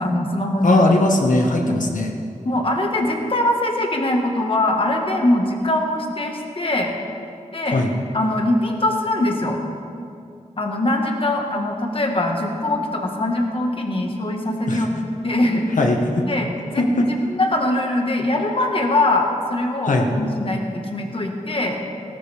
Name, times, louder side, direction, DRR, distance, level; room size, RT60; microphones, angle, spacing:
voice 1, 0.0-0.8 1.6-1.8 2.4-6.9 7.5-7.8 8.1-9.6 10.6-15.6 16.3-21.8, left 1 dB, 45° left, 2 dB, 1.7 m, -22 dB
voice 2, 0.6-2.1 7.7-7.9 14.7-14.9 15.8-16.2 16.8-17.1 19.8-20.1, left 2 dB, 75° left, 2 dB, 1.6 m, -19 dB
17.5 x 14.0 x 3.5 m, 2.5 s
wide cardioid pair, 90°, 13 cm